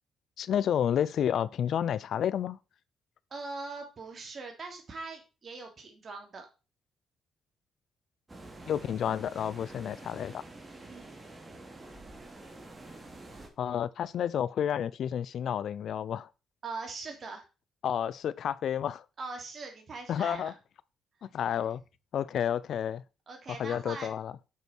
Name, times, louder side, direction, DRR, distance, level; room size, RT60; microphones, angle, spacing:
voice 1, 0.4-2.6 8.7-10.4 13.6-16.3 17.8-19.0 20.1-20.5 21.3-21.8 22.1-23.0 23.5-24.3, left 9 dB, 65° left, 0.5 m, -30 dB
voice 2, 3.3-6.5 10.9-11.1 16.6-17.4 19.2-20.5 21.4-21.5 23.3-24.1, right 3 dB, 45° right, 3.2 m, -41 dB
sound 1, 8.3-13.5, right 2 dB, 20° right, 2.7 m, -48 dB
8.3 x 6.3 x 4.5 m
cardioid pair, 90°, 0 cm